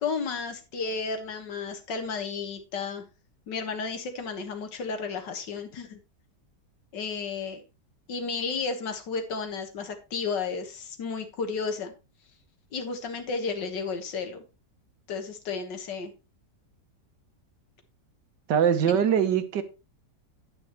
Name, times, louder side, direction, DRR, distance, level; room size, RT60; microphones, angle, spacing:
voice 1, 0.0-3.1 3.5-6.0 6.9-7.6 8.1-11.9 12.7-14.4 15.1-16.1 18.8-18.9, left 5 dB, 85° left, 2.0 m, -32 dB
voice 2, 18.5-19.6, right 8 dB, 85° right, 1.6 m, -22 dB
9.8 x 8.6 x 3.0 m
omnidirectional pair, 1.8 m